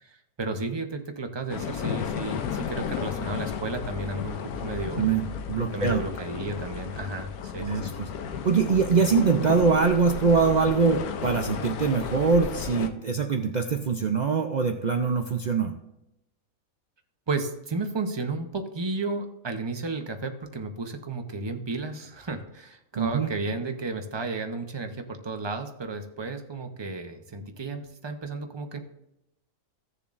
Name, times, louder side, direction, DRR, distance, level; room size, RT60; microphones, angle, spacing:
voice 1, 0.0-5.1 5.7-7.9 17.3-28.8, right 3 dB, 25° right, 5 dB, 0.6 m, -33 dB
sound 1, 1.5-12.9, left 7 dB, 80° left, 1.2 m, -34 dB
voice 2, 5.0-6.0 7.6-8.1 8.4-15.7 22.9-23.3, right 5 dB, 85° right, 5 dB, 0.3 m, -23 dB
16.0 x 7.0 x 2.5 m, 0.87 s
omnidirectional pair, 1.5 m